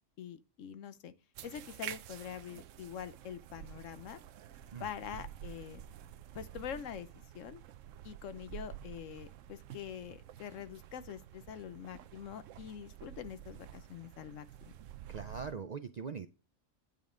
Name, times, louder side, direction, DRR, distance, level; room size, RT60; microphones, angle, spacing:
voice 1, 0.2-1.1 1.4-4.2 4.8-5.9 6.3-7.6 8.0-14.5, left 8 dB, 80° left, 1.1 m, -45 dB
sound 1, 1.3-15.5, right 11 dB, 80° right, 0.9 m, -50 dB
voice 2, 15.1-16.3, right 6 dB, 55° right, 0.4 m, -41 dB
9.8 x 5.2 x 3.7 m
omnidirectional pair, 1.3 m